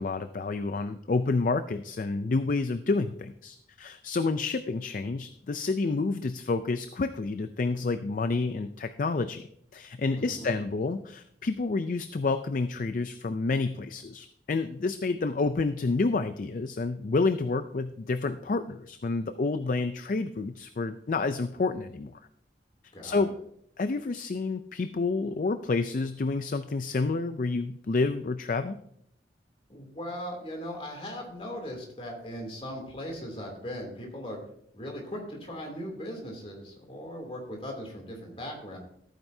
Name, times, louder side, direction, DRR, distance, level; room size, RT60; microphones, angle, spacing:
voice 1, 0.0-9.5 9.7-22.2 23.0-23.3 23.8-28.8, left 3 dB, 50° left, 10 dB, 0.4 m, -29 dB
voice 2, 10.1-10.6 22.9-23.2 29.7-34.4 34.7-38.8, equal, 35° left, 1 dB, 2.8 m, -39 dB
14.5 x 9.0 x 2.7 m, 0.70 s
head